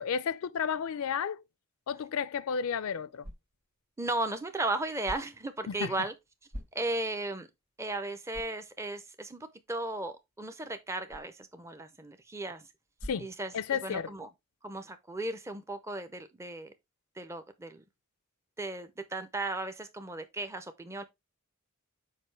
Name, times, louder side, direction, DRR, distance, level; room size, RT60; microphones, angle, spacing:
voice 1, 0.0-1.4 1.9-3.3 5.7-5.9 13.0-13.3 13.5-14.1, left 7 dB, 75° left, 0.4 m, -32 dB
sound 1, 2.4-14.1, equal, 45° right, 1.8 m, -51 dB
voice 2, 4.0-6.1 6.7-7.5 7.8-12.6 13.2-13.5 13.8-14.3 14.6-16.7 17.2-17.8 18.6-21.0, right 2 dB, 15° right, 0.5 m, -35 dB
6.6 x 4.8 x 3.2 m
head